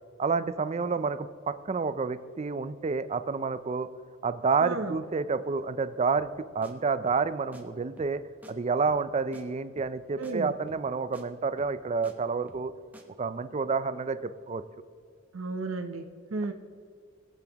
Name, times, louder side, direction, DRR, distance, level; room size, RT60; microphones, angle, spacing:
voice 1, 0.2-3.9 4.2-8.2 8.5-12.7 13.2-14.6, right 4 dB, 35° right, 13 dB, 0.4 m, -29 dB
voice 2, 4.6-4.9 10.2-10.5 15.3-16.5, right 3 dB, 85° right, 6 dB, 0.7 m, -33 dB
sound 1, 6.2-6.4 6.6-6.7 7.1-7.3 7.5-7.6 8.0-8.2 8.4-8.5 8.9-9.1 9.3-9.4 9.8-10.0 10.2-10.3 10.7-10.9 11.1-11.2 11.6-12.1 12.5-12.7 12.9-13.0, right 1 dB, 10° right, 0.9 m, -52 dB
19.5 x 8.1 x 2.9 m, 2.1 s
head